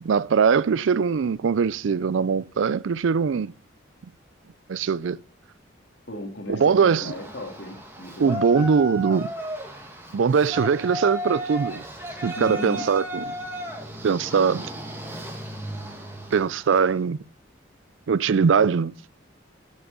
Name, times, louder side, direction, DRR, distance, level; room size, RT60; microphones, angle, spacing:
voice 1, 0.0-3.5 4.7-5.2 6.5-7.1 8.2-9.3 10.1-11.8 12.2-13.2 14.0-14.7 16.3-17.2 18.1-18.9, right 6 dB, 75° right, 0.4 m, -21 dB
voice 2, 6.1-8.4 12.3-12.9, equal, 60° left, 2.4 m, -36 dB
Yell, 6.7-16.9, right 1 dB, 10° right, 2.1 m, -35 dB
9.8 x 7.9 x 5.5 m
head